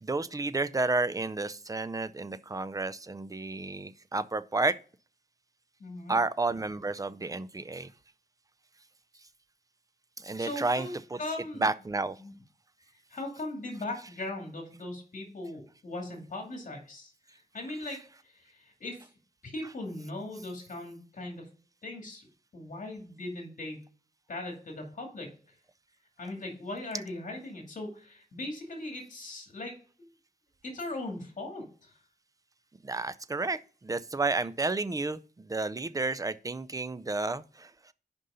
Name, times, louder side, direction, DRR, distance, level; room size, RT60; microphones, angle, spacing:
voice 1, 0.0-4.8 6.1-7.9 10.2-11.2 11.6-12.2 32.8-37.7, right 3 dB, 20° right, 0.5 m, -31 dB
voice 2, 5.8-6.2 10.4-10.9 11.2-11.7 12.2-12.3 13.1-19.1 19.4-21.5 21.8-22.3 22.5-23.9 24.3-25.3 26.2-30.1 30.6-31.9, left 2 dB, 55° left, 2.4 m, -39 dB
6.4 x 5.4 x 5.6 m
wide cardioid pair, 95°, 16 cm